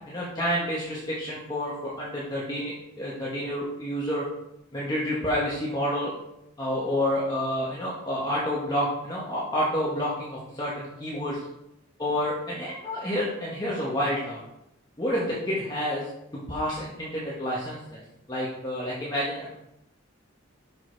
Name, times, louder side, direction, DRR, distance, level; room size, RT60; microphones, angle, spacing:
voice 1, 0.1-4.2 4.7-6.1 6.6-10.7 11.0-11.3 12.0-14.4 15.0-16.0 16.5-18.0 18.3-19.6, equal, 20° left, -6 dB, 1.3 m, -29 dB
6.3 x 5.8 x 4.6 m, 0.86 s
head